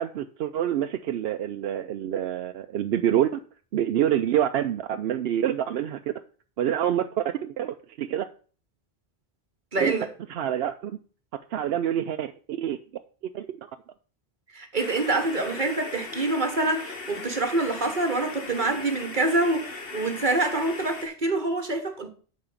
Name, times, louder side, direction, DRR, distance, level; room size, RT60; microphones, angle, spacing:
voice 1, 0.0-3.4 3.7-6.1 6.6-8.3 9.8-10.0 10.3-11.0 11.5-12.8 13.3-13.7, right 10 dB, 70° right, 0.8 m, -27 dB
voice 2, 9.7-10.1 14.5-22.1, right 2 dB, 50° right, 1.3 m, -26 dB
sound 1, 14.8-21.1, left 3 dB, 60° left, 1.5 m, -38 dB
8.8 x 4.2 x 7.1 m
omnidirectional pair, 1.1 m